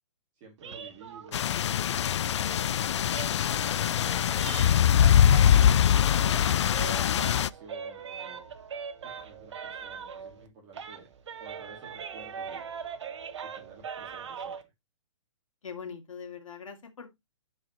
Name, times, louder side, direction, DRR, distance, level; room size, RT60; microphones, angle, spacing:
voice 1, 0.3-3.4 3.7-6.4 6.9-8.4 9.0-11.1 11.4-12.6 13.4-14.6, right 4 dB, 25° right, 2.5 m, -52 dB
sound 1, 0.6-5.7 6.0-10.5 10.7-14.6, right 7 dB, 60° right, 1.4 m, -41 dB
sound 2, 1.3-7.5, left 9 dB, 65° left, 0.5 m, -23 dB
voice 2, 15.6-17.1, left 6 dB, 90° left, 2.5 m, -42 dB
11.0 x 4.9 x 3.0 m
hypercardioid pair, 155°, 16 cm